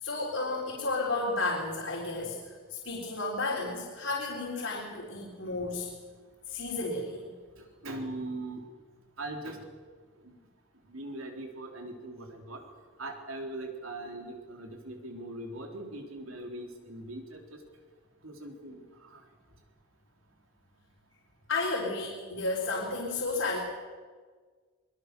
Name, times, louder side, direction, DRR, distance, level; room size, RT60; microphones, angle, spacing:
voice 1, 0.0-5.9 6.5-7.3 21.5-23.6, left 3 dB, 75° left, -4 dB, 4.0 m, -32 dB
voice 2, 7.6-8.6 9.2-9.7 10.2-10.4 10.9-12.6 13.0-17.6 18.2-19.2, right 2 dB, 90° right, 3 dB, 3.6 m, -41 dB
22.0 x 21.0 x 6.8 m, 1.5 s
head